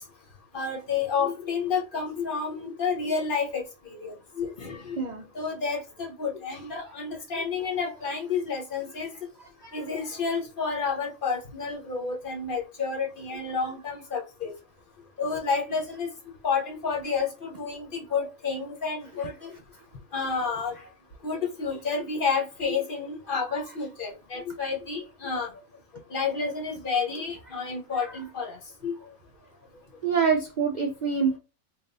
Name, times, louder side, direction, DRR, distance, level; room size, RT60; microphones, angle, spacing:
voice 1, 0.5-5.0 5.3-9.1 9.7-14.5 15.2-16.1 16.4-19.5 20.1-20.7 21.2-25.5 26.1-28.9, left 5 dB, 40° left, 1.0 m, -30 dB
voice 2, 4.9-5.2 6.8-6.9 9.4-10.1 23.5-23.6 28.0-28.1 30.0-31.4, right 6 dB, 85° right, 0.4 m, -27 dB
3.5 x 2.4 x 4.0 m
omnidirectional pair, 1.5 m